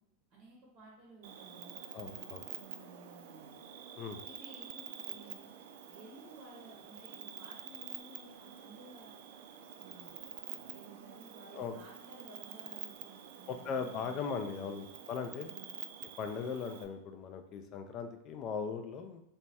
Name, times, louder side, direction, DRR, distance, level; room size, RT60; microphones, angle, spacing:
voice 1, 0.3-3.6 4.2-5.5 5.8-9.2 9.8-14.7 15.4-15.8, right 3 dB, 35° right, -3 dB, 0.7 m, -56 dB
Cricket, 1.2-16.8, right 9 dB, 65° right, 0.4 m, -48 dB
voice 2, 1.9-2.4 4.0-4.2 11.5-11.7 13.5-15.5 16.2-19.2, left 6 dB, 30° left, 7 dB, 0.3 m, -39 dB
3.1 x 2.3 x 4.1 m, 0.79 s
supercardioid pair, 165°, 0 cm